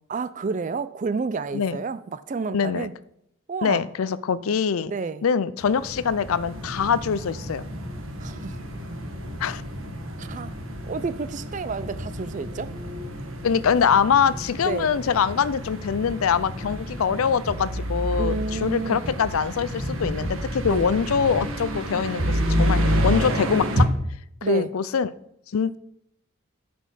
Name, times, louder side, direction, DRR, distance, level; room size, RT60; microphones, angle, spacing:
voice 1, 0.1-2.9 3.5-3.8 4.8-5.3 8.2-8.6 10.2-10.5 10.9-12.7 14.6-14.9 18.2-19.1 20.6-20.9 24.4-24.7, right 4 dB, 35° right, 0.3 m, -30 dB
voice 2, 2.5-2.9 3.6-4.9 5.2-7.6 9.4-9.6 13.4-23.9 24.4-25.1 25.5-25.8, left 6 dB, 80° left, 0.4 m, -23 dB
sound 1, 5.6-23.9, equal, 75° right, 1.4 m, -29 dB
10.0 x 5.2 x 5.5 m
head